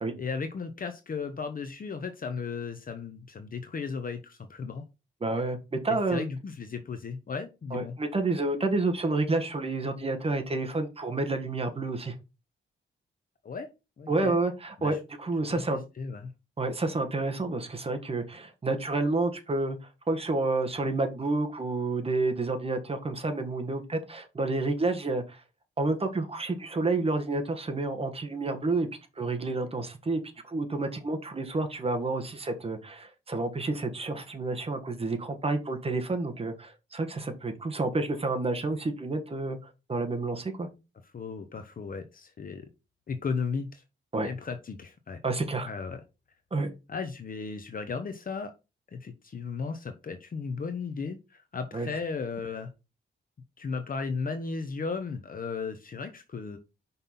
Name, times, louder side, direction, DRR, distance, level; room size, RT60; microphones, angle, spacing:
voice 1, 0.2-4.8 5.9-7.9 13.4-13.7 14.0-14.4 14.8-15.0 15.5-16.3 41.1-42.7 43.1-43.8 44.2-45.2 45.6-46.0 46.9-48.5 48.9-52.7 53.6-56.6, left 5 dB, 45° left, 8 dB, 0.8 m, -35 dB
voice 2, 5.2-6.3 7.7-12.1 14.1-15.8 16.6-19.8 20.1-25.4 25.8-28.9 29.2-40.7 44.1-44.3 45.2-45.7 46.5-46.7 51.7-51.9, right 2 dB, 30° right, 5 dB, 1.3 m, -29 dB
5.5 x 5.4 x 4.1 m, 0.27 s
wide cardioid pair, 130°, 21 cm